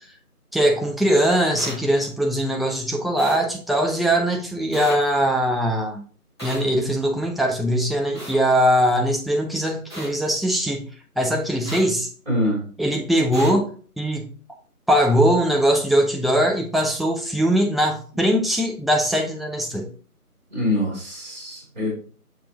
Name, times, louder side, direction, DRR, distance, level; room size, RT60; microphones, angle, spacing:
voice 1, 0.5-6.0 6.4-10.9 11.2-12.1 12.8-14.3 14.9-19.9, equal, ahead, 1 dB, 0.5 m, -21 dB
sound 1, 1.6-1.7 3.2-3.4 4.7-4.9 6.4-6.6 8.1-8.4 9.9-10.1 11.7-11.8 13.3-13.5, equal, 15° left, 2.1 m, -34 dB
voice 2, 12.3-12.6 20.5-21.9, left 1 dB, 30° right, -2 dB, 3.2 m, -24 dB
6.7 x 5.4 x 2.9 m, 0.41 s
figure-of-eight pair, 170°, 46 cm